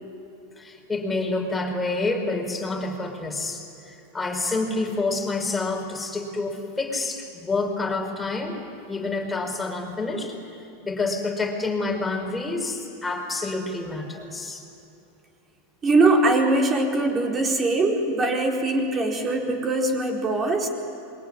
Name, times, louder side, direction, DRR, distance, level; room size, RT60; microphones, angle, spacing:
voice 1, 0.6-8.6 8.9-10.3 10.8-14.6, left 3 dB, 10° left, 1 dB, 4.8 m, -28 dB
voice 2, 15.8-20.7, right 2 dB, 25° right, 1 dB, 4.5 m, -22 dB
26.5 x 23.0 x 9.9 m, 2.9 s
supercardioid pair, 130°, 0 cm